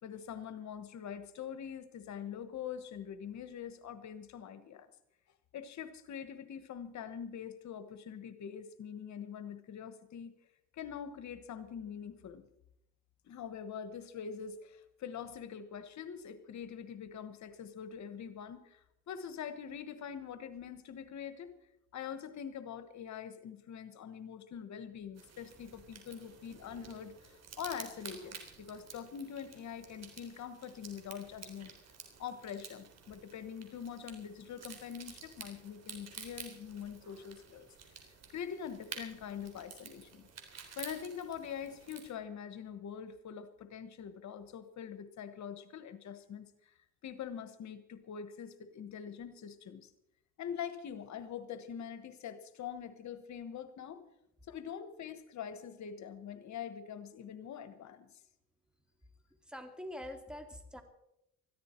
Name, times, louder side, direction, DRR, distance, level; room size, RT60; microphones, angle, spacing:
voice 1, 0.0-4.9 5.5-10.3 10.7-12.4 13.2-21.5 21.9-31.7 32.2-37.7 38.3-40.3 40.5-46.8 47.0-49.9 50.4-54.0 54.5-58.1, left 8 dB, 65° left, 11 dB, 1.2 m, -44 dB
sound 1, 25.2-42.1, right 6 dB, 60° right, 3.8 m, -51 dB
voice 2, 59.4-60.8, left 1 dB, 5° right, 6 dB, 2.2 m, -44 dB
20.5 x 14.0 x 4.4 m, 0.82 s
cardioid pair, 90°, 30 cm